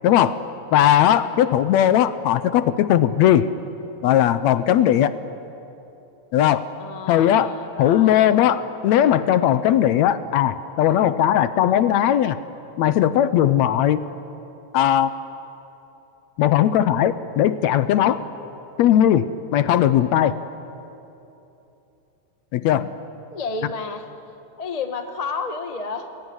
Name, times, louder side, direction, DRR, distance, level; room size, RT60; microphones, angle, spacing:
voice 1, 0.0-0.4 0.7-3.5 4.0-5.2 6.3-6.7 7.1-12.4 12.8-14.0 14.7-15.1 16.4-18.2 18.8-20.3 22.5-22.9, left 11 dB, 75° left, 13 dB, 1.9 m, -18 dB
voice 2, 6.8-8.2 23.3-24.1 24.6-26.1, left 4 dB, 40° left, 6 dB, 0.5 m, -31 dB
29.0 x 20.0 x 9.7 m, 2.9 s
omnidirectional pair, 3.5 m